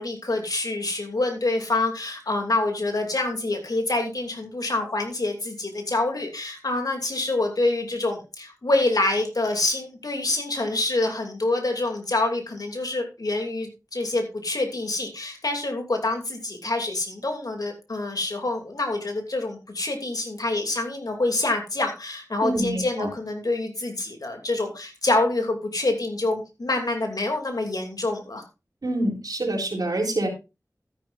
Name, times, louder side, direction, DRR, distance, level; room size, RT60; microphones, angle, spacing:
voice 1, 0.0-28.4, left 2 dB, 75° left, 4 dB, 2.8 m, -26 dB
voice 2, 22.4-23.1 28.8-30.3, right 1 dB, 85° right, 0 dB, 3.7 m, -26 dB
13.0 x 10.5 x 2.6 m, 0.28 s
wide cardioid pair, 60°, 6 cm